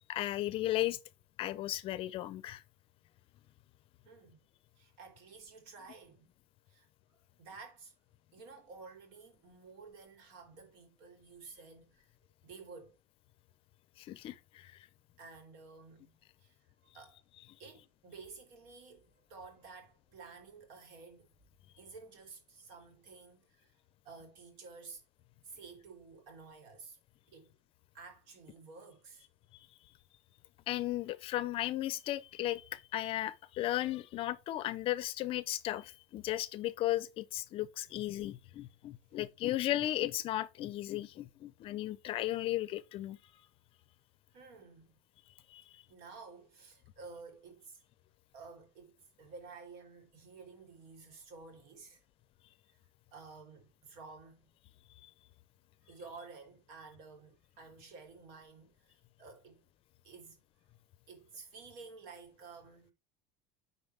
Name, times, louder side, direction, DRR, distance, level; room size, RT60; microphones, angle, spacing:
voice 1, 0.1-1.0 1.4-2.6 14.0-14.8 30.7-43.2 45.5-45.6 55.0-55.1, left 14 dB, 40° left, 0.6 m, -35 dB
voice 2, 4.0-4.4 4.8-6.3 6.7-7.9 8.3-12.1 12.4-13.0 15.2-16.6 16.8-17.2 17.6-21.3 21.8-23.8 24.0-25.0 25.4-27.0 27.3-27.5 27.9-29.3 38.6-38.7 44.3-44.9 45.9-47.8 48.3-52.0 53.1-54.5 55.8-59.6 60.0-60.4 61.1-62.9, right 4 dB, 70° right, 3.4 m, -52 dB
9.7 x 4.3 x 3.4 m
cardioid pair, 150°, 14 cm